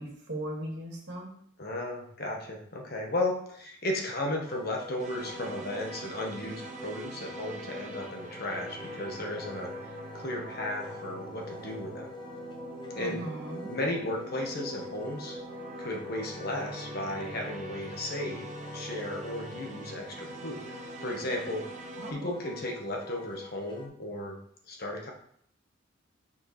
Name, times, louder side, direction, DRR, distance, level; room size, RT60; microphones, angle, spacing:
voice 1, 0.0-1.3 13.0-13.7 22.0-22.3, right 1 dB, 60° right, -2 dB, 1.9 m, -38 dB
voice 2, 1.6-9.7 10.1-12.1 12.9-13.3 13.7-15.4 15.8-18.5 18.7-20.7 21.0-21.6 22.1-24.4 24.7-25.1, left 1 dB, 50° left, 1 dB, 1.3 m, -35 dB
Wind instrument woodwind instrument, 4.4-23.9, left 3 dB, 25° left, 0.7 m, -45 dB
sound 1, 5.0-22.1, right 3 dB, 40° right, 0.7 m, -44 dB
5.8 x 4.5 x 4.2 m, 0.65 s
head